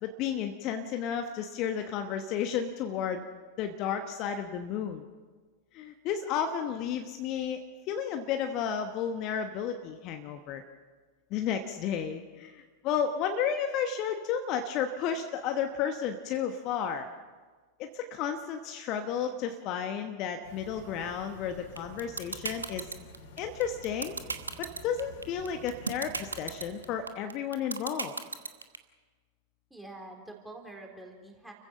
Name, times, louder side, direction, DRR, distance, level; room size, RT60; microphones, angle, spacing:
voice 1, 0.0-3.2 3.6-5.0 5.7-7.6 7.9-10.6 11.3-17.1 17.8-22.9 23.4-24.2 24.6-28.1, left 8 dB, 40° left, 6 dB, 1.1 m, -32 dB
sound 1, 20.4-27.2, left 1 dB, 55° left, 3.6 m, -50 dB
sound 2, 21.8-28.8, right 4 dB, 75° right, 1.1 m, -34 dB
voice 2, 29.7-31.5, right 2 dB, 5° right, 1 dB, 3.9 m, -46 dB
30.0 x 15.5 x 5.7 m, 1.4 s
figure-of-eight pair, 90°, 0 cm